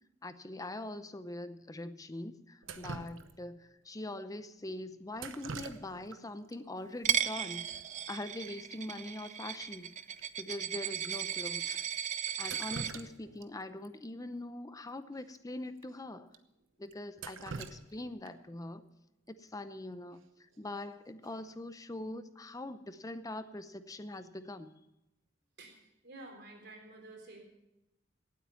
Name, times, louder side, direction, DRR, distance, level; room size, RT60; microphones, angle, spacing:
voice 1, 0.2-7.8 8.1-9.9 10.4-11.8 12.4-16.3 16.8-18.8 19.3-20.3 20.6-24.7, left 1 dB, 20° left, 12 dB, 0.6 m, -43 dB
Drip, 2.6-3.6 5.1-6.2 6.5-6.6 7.5-7.6 7.9-8.1 8.4-8.5 9.0-9.1 9.5-9.6 10.2-10.3 11.0-11.1 12.3-13.5 13.8-13.9 15.3-15.4 15.8-15.9 16.3-16.4 16.9-18.5 20.5-20.8 21.2-21.6, right 4 dB, 80° right, 0.9 m, -45 dB
Coin (dropping), 7.0-12.9, right 9 dB, 40° right, 0.5 m, -36 dB
voice 2, 25.6-27.4, right 2 dB, 55° right, 2 dB, 3.9 m, -51 dB
18.0 x 8.5 x 5.8 m, 0.90 s
head